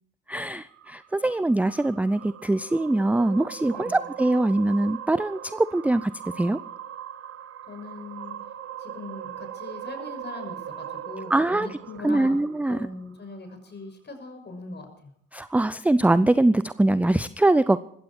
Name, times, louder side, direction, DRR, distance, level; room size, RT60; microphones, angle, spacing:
voice 1, 0.3-6.1 6.4-6.6 11.3-11.7 12.0-12.8 15.3-17.8, right 2 dB, 5° right, 16 dB, 0.5 m, -22 dB
sound 1, 0.7-13.2, right 10 dB, 45° right, 1.5 m, -40 dB
voice 2, 7.7-8.4 8.8-15.1, left 3 dB, 35° left, 5 dB, 6.2 m, -41 dB
20.5 x 15.5 x 4.4 m, 0.72 s
figure-of-eight pair, 50°, 31 cm